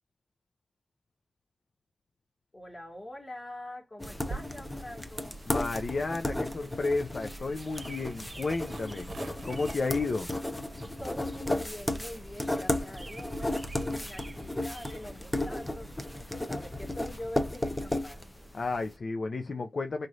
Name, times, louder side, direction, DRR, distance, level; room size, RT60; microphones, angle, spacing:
voice 1, 2.5-5.4 11.0-15.9 16.3-18.2, left 1 dB, 35° left, 2.1 m, -44 dB
sound 1, 4.0-18.8, left 1 dB, 15° left, 0.8 m, -34 dB
sound 2, 4.2-14.0, right 3 dB, 75° right, 0.8 m, -49 dB
voice 2, 5.5-9.1 9.4-10.3 18.5-20.1, left 3 dB, 60° left, 0.6 m, -32 dB
sound 3, 6.9-16.3, right 2 dB, 20° right, 1.3 m, -51 dB
4.0 x 3.1 x 2.5 m
cardioid pair, 55°, 0 cm